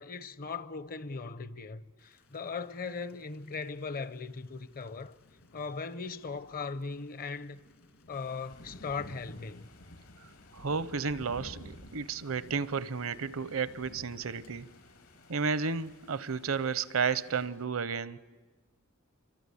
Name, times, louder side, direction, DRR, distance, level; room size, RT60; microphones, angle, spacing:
voice 1, 0.0-5.1 5.5-7.6 8.1-9.7, left 4 dB, 45° left, 0.8 m, -39 dB
Thunder / Rain, 2.0-17.6, left 1 dB, 65° left, 2.3 m, -55 dB
sound 1, 8.1-17.5, left 3 dB, 85° left, 4.7 m, -60 dB
voice 2, 10.5-14.7 15.3-18.2, right 5 dB, 70° right, 0.8 m, -32 dB
28.0 x 24.0 x 8.4 m
head